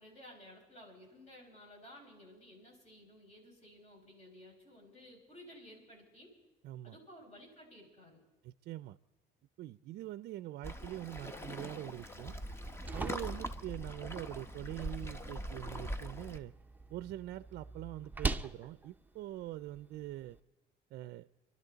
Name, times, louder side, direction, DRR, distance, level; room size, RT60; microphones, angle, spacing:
voice 1, 0.0-6.3 6.8-8.2, left 1 dB, 40° left, 0 dB, 6.1 m, -55 dB
voice 2, 6.6-7.0 8.4-9.0 9.6-12.4 12.9-16.5 16.9-20.4 20.9-21.3, right 15 dB, 70° right, 14 dB, 0.4 m, -44 dB
Waves surf, 10.6-16.4, equal, 15° left, 1.0 m, -42 dB
sound 1, 12.4-20.4, right 3 dB, 10° right, 0.6 m, -43 dB
28.5 x 12.0 x 4.0 m, 1.2 s
cardioid pair, 110°, 17 cm